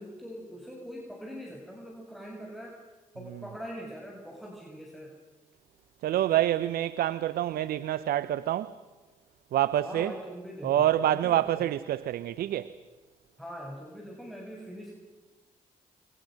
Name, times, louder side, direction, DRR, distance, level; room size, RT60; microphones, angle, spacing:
voice 1, 0.0-2.8 3.1-5.1 9.8-11.6 13.4-14.9, equal, ahead, 6.8 m, -42 dB
voice 2, 6.0-8.7 9.5-10.1 10.6-12.7, right 12 dB, 75° right, 0.7 m, -27 dB
29.5 x 23.5 x 6.4 m
hypercardioid pair, 45°, 16 cm